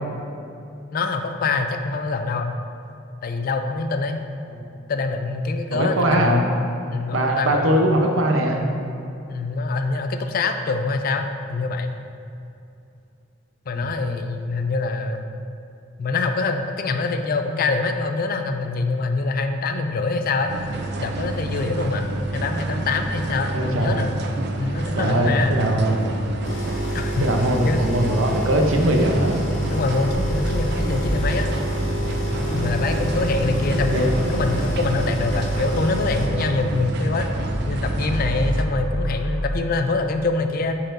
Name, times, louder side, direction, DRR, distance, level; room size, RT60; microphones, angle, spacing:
voice 1, 0.9-2.5 3.2-4.2 4.9-6.5 6.9-7.7 9.3-11.2 11.5-11.9 13.7-15.2 16.0-20.6 21.0-24.1 24.6-25.6 26.9-27.3 27.6-27.8 29.7-31.5 32.5-40.8, left 3 dB, 45° left, 6 dB, 0.4 m, -24 dB
voice 2, 5.7-6.4 7.1-8.7 13.7-13.9 23.5-23.9 24.9-26.0 27.2-29.4 33.7-34.2, right 1 dB, 85° right, 1 dB, 0.8 m, -21 dB
sound 1, 20.5-38.6, right 2 dB, 55° right, 0.4 m, -28 dB
sound 2, 26.4-36.3, equal, 60° left, 1.1 m, -30 dB
Car / Idling / Accelerating revving vroom, 30.1-39.5, equal, 15° left, 0.7 m, -30 dB
8.8 x 4.2 x 2.6 m, 2.6 s
head